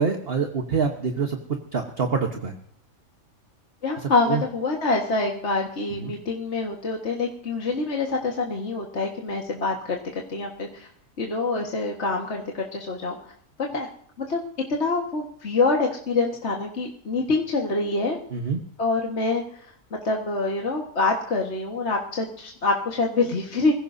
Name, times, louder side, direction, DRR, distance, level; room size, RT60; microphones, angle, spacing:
voice 1, 0.0-1.4 1.7-2.5 4.0-4.4 6.0-6.1 18.3-18.6, right 5 dB, 45° right, 3 dB, 1.3 m, -25 dB
voice 2, 3.8-10.0 10.3-10.9 11.2-13.2 13.7-13.9 14.2-14.4 14.7-18.2 18.8-19.6 20.0-23.7, left 3 dB, 50° left, -1 dB, 1.8 m, -25 dB
24.5 x 16.0 x 2.7 m, 0.62 s
omnidirectional pair, 1.5 m